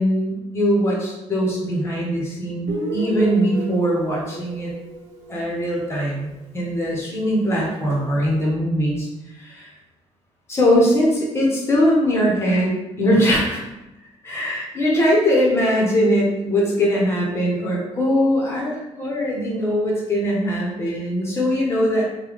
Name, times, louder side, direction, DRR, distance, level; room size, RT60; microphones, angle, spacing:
voice 1, 0.0-4.7 5.3-9.1 9.3-9.7 10.5-13.6 14.2-22.0, equal, 20° left, -3 dB, 0.9 m, -21 dB
Guitar, 2.7-6.2, right 2 dB, 75° right, 0.9 m, -33 dB
3.2 x 2.3 x 3.4 m, 0.96 s
cardioid pair, 155°, 12 cm